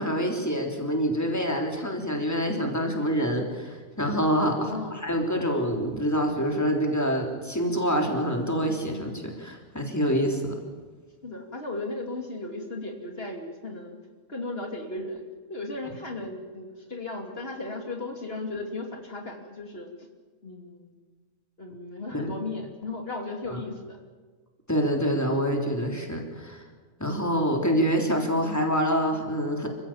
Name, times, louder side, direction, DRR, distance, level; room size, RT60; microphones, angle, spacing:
voice 1, 0.0-10.6 22.1-22.3 23.5-23.6 24.7-26.6 27.0-29.7, equal, 15° left, 2 dB, 3.7 m, -26 dB
voice 2, 4.5-5.0 11.2-14.0 14.3-19.9 20.4-20.9 21.6-24.0, left 2 dB, 55° left, 2 dB, 3.1 m, -36 dB
27.5 x 16.0 x 8.9 m, 1.4 s
omnidirectional pair, 1.2 m